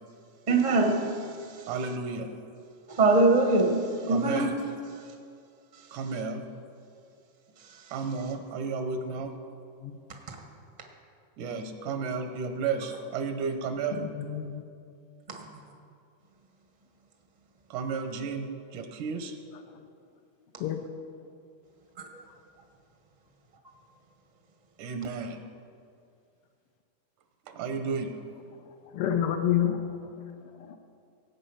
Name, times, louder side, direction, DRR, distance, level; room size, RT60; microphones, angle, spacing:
voice 1, 0.5-1.3 2.9-4.5 10.3-10.4 15.3-15.4, right 2 dB, 45° right, 2 dB, 0.5 m, -23 dB
voice 2, 1.7-2.3 4.1-4.5 5.9-6.4 7.9-9.3 11.4-14.0 17.7-19.3 24.8-25.4 27.5-28.1, right 5 dB, 85° right, 6 dB, 2.4 m, -32 dB
voice 3, 14.0-14.6 20.6-20.8 28.9-29.8 30.7-30.8, left 10 dB, 80° left, 6 dB, 1.3 m, -28 dB
18.0 x 8.1 x 5.6 m, 2.4 s
omnidirectional pair, 3.5 m